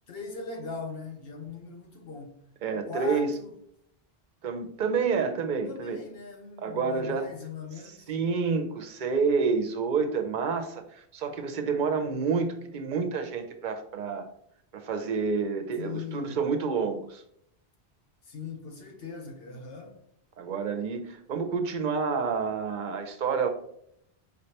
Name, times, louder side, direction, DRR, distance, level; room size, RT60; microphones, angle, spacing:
voice 1, 0.1-2.5 2.9-3.5 5.6-8.1 15.8-16.4 18.2-19.9, left 5 dB, 65° left, 1.1 m, -40 dB
voice 2, 2.6-3.3 4.4-6.0 6.6-7.3 8.1-14.3 14.7-17.2 20.4-23.5, right 5 dB, 55° right, 0.7 m, -29 dB
5.0 x 3.2 x 2.9 m
omnidirectional pair, 1.1 m